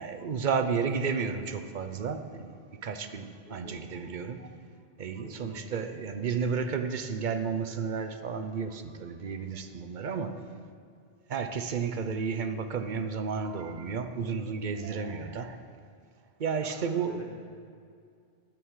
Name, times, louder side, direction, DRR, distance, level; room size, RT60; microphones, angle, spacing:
voice 1, 0.0-4.5 5.0-10.4 11.3-15.6 16.4-17.2, right 5 dB, 50° right, 8 dB, 0.8 m, -32 dB
voice 2, 3.4-3.8 5.2-5.5 17.0-17.2, left 1 dB, 55° left, -1 dB, 2.0 m, -47 dB
12.0 x 8.8 x 4.8 m, 2.3 s
omnidirectional pair, 1.1 m